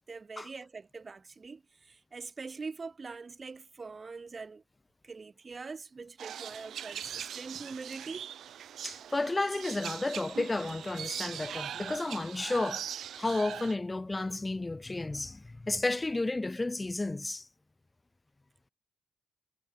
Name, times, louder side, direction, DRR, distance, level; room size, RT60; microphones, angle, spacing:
voice 1, 0.0-4.6 5.0-8.3, right 4 dB, 30° right, 1.6 m, -43 dB
sound 1, 6.2-13.8, right 9 dB, 65° right, 0.5 m, -41 dB
voice 2, 8.8-12.8 13.2-17.5, left 2 dB, 15° left, 0.3 m, -32 dB
cardioid pair, 90°, 0 cm